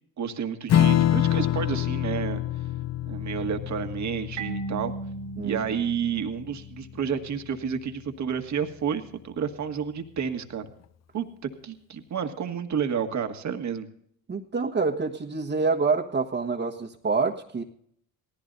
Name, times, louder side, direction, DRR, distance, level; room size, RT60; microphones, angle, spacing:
voice 1, 0.2-2.4 3.1-4.9 5.4-10.7 11.1-13.9, right 7 dB, 50° right, 6 dB, 1.7 m, -30 dB
Strum, 0.7-7.5, left 11 dB, 50° left, 0.5 m, -27 dB
Marimba xylophone, 4.4-7.0, right 4 dB, 90° right, 1.6 m, -37 dB
voice 2, 14.3-17.6, right 4 dB, 30° right, 0 dB, 1.4 m, -27 dB
18.5 x 15.0 x 2.7 m, 0.67 s
hypercardioid pair, 55°, 35 cm